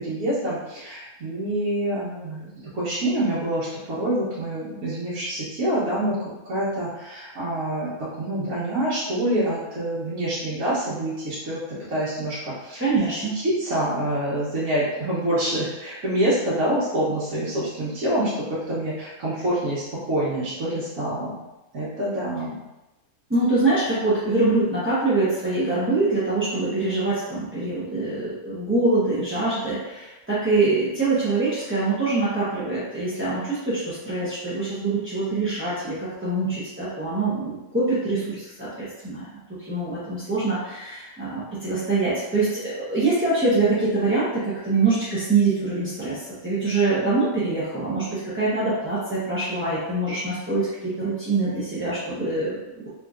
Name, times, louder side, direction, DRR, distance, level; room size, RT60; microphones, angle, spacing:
voice 1, 0.0-2.5 2.7-6.2 6.4-7.9 8.2-12.8 13.3-21.4 21.7-22.6, right 1 dB, 65° right, -10 dB, 1.3 m, -26 dB
voice 2, 12.8-13.4 23.3-39.3 39.7-52.9, right 3 dB, 15° right, -12 dB, 0.4 m, -24 dB
3.5 x 2.7 x 2.4 m, 0.99 s
omnidirectional pair, 1.5 m